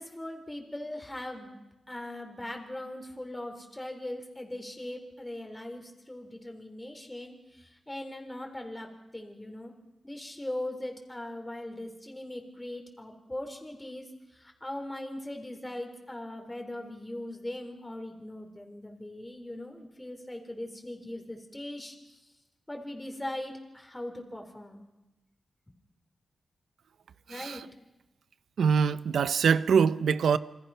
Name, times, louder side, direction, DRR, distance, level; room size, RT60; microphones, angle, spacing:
voice 1, 0.0-1.6 1.9-9.7 10.0-14.1 14.3-22.2 22.7-24.8 27.3-27.7, left 1 dB, 15° left, 4.1 m, -40 dB
voice 2, 28.6-30.4, right 6 dB, 90° right, 0.8 m, -23 dB
28.5 x 25.5 x 5.8 m
wide cardioid pair, 95°, 0 cm